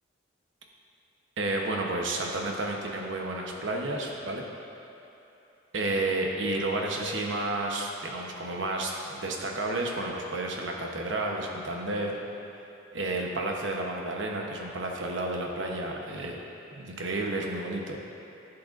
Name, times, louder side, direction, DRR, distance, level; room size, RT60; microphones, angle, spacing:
voice 1, 1.4-4.4 5.7-12.2 12.9-16.4 16.7-18.0, right 2 dB, 75° right, 0 dB, 0.9 m, -31 dB
11.0 x 7.8 x 2.5 m, 2.9 s
head